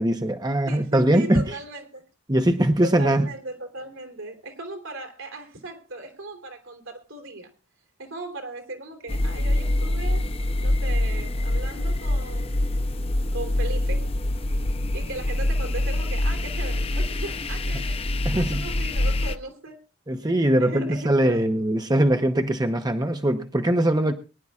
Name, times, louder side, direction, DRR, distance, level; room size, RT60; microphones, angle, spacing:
voice 1, 0.0-1.4 2.3-3.2 18.2-18.6 20.1-24.1, right 1 dB, 20° right, 0.8 m, -21 dB
voice 2, 0.7-2.0 2.8-7.5 8.0-12.5 13.3-14.1 14.9-18.1 18.3-19.8 20.2-21.5, right 2 dB, 75° right, 3.4 m, -37 dB
sound 1, 9.1-19.4, left 1 dB, 30° left, 0.6 m, -25 dB
23.5 x 11.0 x 2.4 m
head